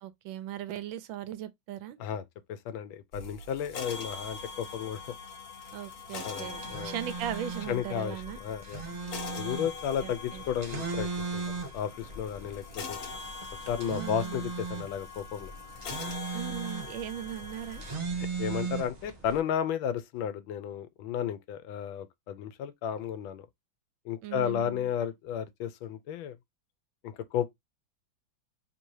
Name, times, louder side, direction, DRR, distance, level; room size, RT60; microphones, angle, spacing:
voice 1, 0.0-2.0 5.7-8.4 10.0-10.4 12.4-12.5 13.8-14.4 16.3-17.8 24.2-24.9, right 11 dB, 85° right, 1.4 m, -38 dB
voice 2, 2.5-5.1 6.2-6.9 7.7-8.8 9.3-13.0 13.7-15.5 18.4-23.5 24.0-26.4 27.0-27.5, left 9 dB, 85° left, 1.4 m, -33 dB
sound 1, 3.1-18.0, left 4 dB, 55° left, 1.4 m, -43 dB
sound 2, 6.4-19.4, right 4 dB, 35° right, 0.7 m, -38 dB
3.6 x 2.7 x 4.6 m
omnidirectional pair, 2.1 m